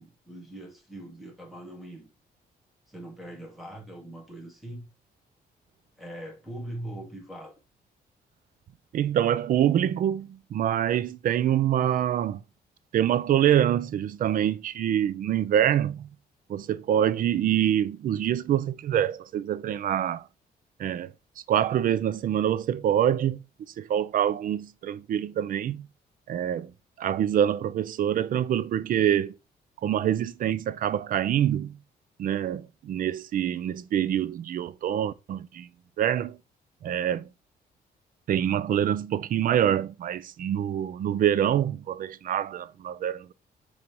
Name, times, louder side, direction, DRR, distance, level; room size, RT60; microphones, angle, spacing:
voice 1, 0.0-2.1 2.9-4.8 6.0-7.6, right 1 dB, ahead, 2.0 m, -41 dB
voice 2, 8.9-12.4 12.9-16.1 16.5-20.2 20.8-21.1 21.5-25.9 26.3-26.7 27.0-29.3 29.8-31.8 32.2-35.7 36.0-36.4 36.8-37.3 38.3-43.3, right 10 dB, 55° right, 0.5 m, -25 dB
6.8 x 3.3 x 5.3 m
cardioid pair, 130°, 17 cm